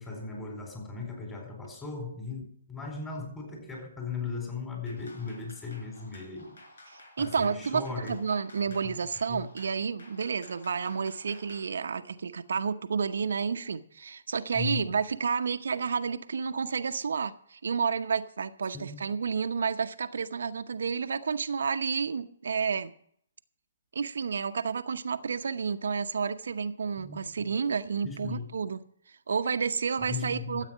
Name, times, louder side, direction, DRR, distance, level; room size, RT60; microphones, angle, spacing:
voice 1, 0.0-2.4 2.7-6.6 7.2-8.2 8.8-8.9 9.3-9.4 14.5-14.9 18.7-19.1 27.0-27.5 28.0-28.5 30.0-30.7, left 4 dB, 15° left, 4.3 m, -37 dB
sound 1, 4.9-11.7, left 2 dB, 75° left, 4.5 m, -53 dB
voice 2, 6.9-22.9 23.9-30.6, right 6 dB, 75° right, 0.8 m, -30 dB
13.5 x 8.4 x 6.3 m
hypercardioid pair, 140°, 0 cm